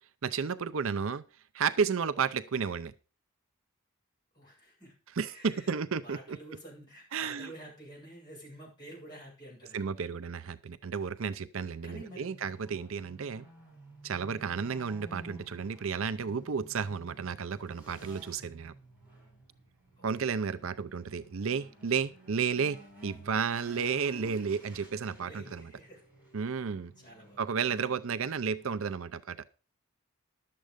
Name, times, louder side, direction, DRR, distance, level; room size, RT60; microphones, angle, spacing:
voice 1, 0.2-1.2 1.5-2.9 5.2-6.4 7.1-7.5 9.7-13.5 14.0-18.7 20.0-25.6 26.3-26.9 27.4-29.4, right 6 dB, 65° right, 12 dB, 0.6 m, -32 dB
voice 2, 4.3-4.9 5.3-5.7 6.0-9.9 11.8-12.4 20.0-20.3 25.2-26.0 27.0-27.4, right 1 dB, 20° left, -4 dB, 7.6 m, -49 dB
sound 1, 11.6-28.8, right 1 dB, 5° right, 6.6 m, -54 dB
11.5 x 7.6 x 5.1 m, 0.34 s
head